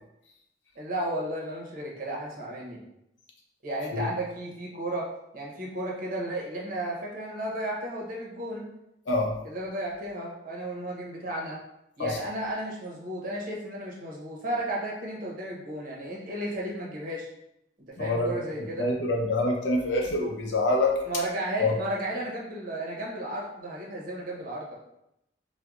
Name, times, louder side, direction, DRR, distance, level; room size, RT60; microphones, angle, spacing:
voice 1, 0.7-2.8 3.6-5.1 5.3-8.6 9.4-11.6 12.0-17.3 17.9-18.9 21.1-24.8, right 1 dB, 50° right, -2 dB, 0.8 m, -33 dB
voice 2, 18.0-18.3 18.8-21.0 21.6-21.7, left 2 dB, 75° left, 0 dB, 0.6 m, -26 dB
4.4 x 2.1 x 2.4 m, 0.82 s
head